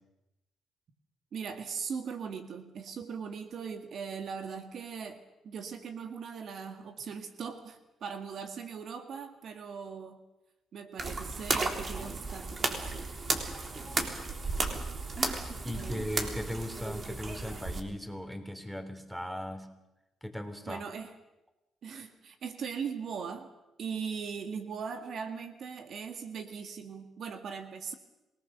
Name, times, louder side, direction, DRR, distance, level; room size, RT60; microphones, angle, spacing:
voice 1, 1.3-10.2 10.7-13.1 15.7-16.3 20.7-21.1 21.8-23.5 23.8-27.9, right 6 dB, 65° right, 8 dB, 2.0 m, -40 dB
sound 1, 11.0-17.8, right 3 dB, 40° right, 3.6 m, -34 dB
voice 2, 15.6-19.7 20.2-20.8, equal, 5° right, 9 dB, 3.6 m, -38 dB
27.0 x 19.0 x 6.9 m, 0.95 s
supercardioid pair, 70°, 0 cm